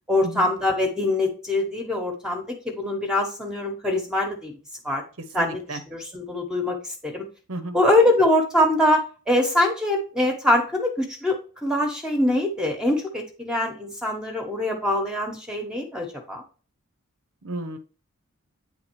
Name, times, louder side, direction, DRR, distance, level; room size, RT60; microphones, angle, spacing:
voice 1, 0.1-4.5 4.8-5.0 5.3-6.8 7.0-7.2 7.7-9.0 9.3-11.4 11.6-16.4, left 1 dB, 5° right, 2 dB, 0.9 m, -23 dB
voice 2, 5.4-5.8 7.5-7.8 17.4-17.8, right 2 dB, 75° right, 10 dB, 0.8 m, -33 dB
8.8 x 3.5 x 4.5 m, 0.38 s
head